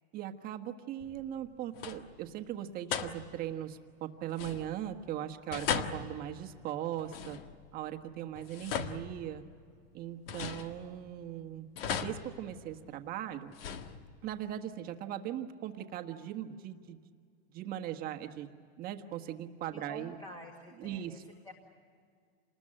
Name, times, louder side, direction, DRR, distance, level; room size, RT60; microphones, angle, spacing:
voice 1, 0.1-7.4 7.7-9.4 9.9-11.7 12.0-13.5 14.2-17.0 17.5-18.5 18.8-20.1 20.8-21.2, right 11 dB, 25° right, 6 dB, 1.4 m, -39 dB
sound 1, 1.0-1.5 1.7-2.3 2.9-3.6 4.3-5.0 5.5-7.8 8.3-9.7 10.3-11.2 11.8-13.0 13.5-14.4, left 7 dB, 60° left, 1.7 m, -39 dB
voice 2, 19.7-21.5, equal, 15° left, 3 dB, 1.9 m, -49 dB
28.0 x 20.5 x 8.8 m, 2.1 s
supercardioid pair, 155°, 33 cm